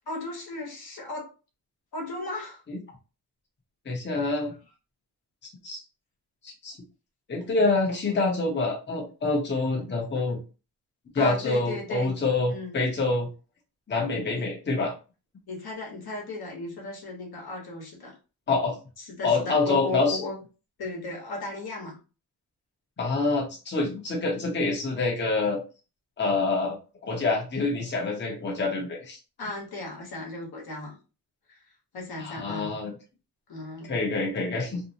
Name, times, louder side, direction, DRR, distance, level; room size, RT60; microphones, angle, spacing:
voice 1, 0.1-1.3 1.9-2.6 11.1-12.2 12.5-12.7 14.3-14.4 15.5-18.1 19.0-20.4 20.8-22.0 29.4-31.0 31.5-31.6 31.9-32.8 33.5-34.0, left 2 dB, 65° left, -1 dB, 1.0 m, -36 dB
voice 2, 3.9-4.5 5.6-5.8 6.4-6.8 7.3-10.4 11.1-13.3 13.9-14.9 18.5-18.7 19.2-20.2 23.0-25.6 26.2-29.2 32.2-32.9 33.9-34.8, left 3 dB, 25° left, -1 dB, 0.8 m, -26 dB
2.6 x 2.1 x 2.7 m, 0.33 s
cardioid pair, 100°, 40 cm